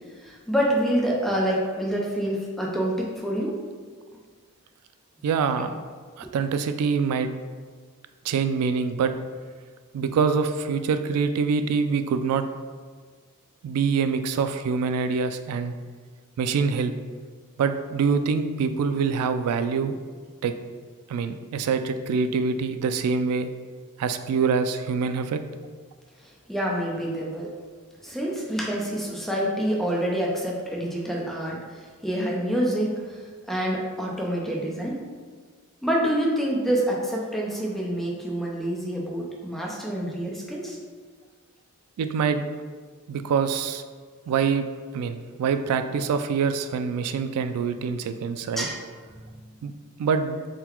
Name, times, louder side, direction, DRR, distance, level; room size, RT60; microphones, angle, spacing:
voice 1, 0.2-3.6 5.5-5.6 26.5-27.5 28.0-31.6 32.0-32.9 33.5-35.0 35.8-40.8 48.6-48.8, equal, ahead, -3 dB, 0.5 m, -27 dB
voice 2, 5.2-5.7 6.2-7.3 8.2-9.1 9.9-12.4 13.6-15.7 16.4-16.9 17.6-20.0 20.4-20.5 21.1-23.5 24.0-25.4 42.0-42.4 43.1-43.8 44.3-44.6 44.9-48.7 49.6-49.7 50.0-50.4, right 5 dB, 80° right, 10 dB, 0.3 m, -25 dB
3.8 x 2.2 x 4.3 m, 1.5 s
head